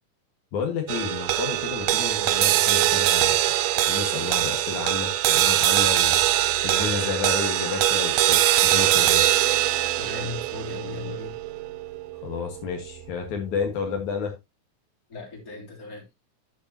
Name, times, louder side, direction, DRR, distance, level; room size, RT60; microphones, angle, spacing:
voice 1, 0.5-3.4 3.9-6.2 6.6-9.2 12.2-14.3, left 6 dB, 75° left, 3.1 m, -31 dB
sound 1, 0.9-13.4, right 13 dB, 75° right, 1.7 m, -23 dB
Liquid, 2.1-9.5, right 4 dB, 50° right, 3.8 m, -51 dB
voice 2, 10.0-11.3 15.1-16.1, left 5 dB, 30° left, 3.8 m, -37 dB
10.0 x 8.6 x 2.9 m
omnidirectional pair, 3.5 m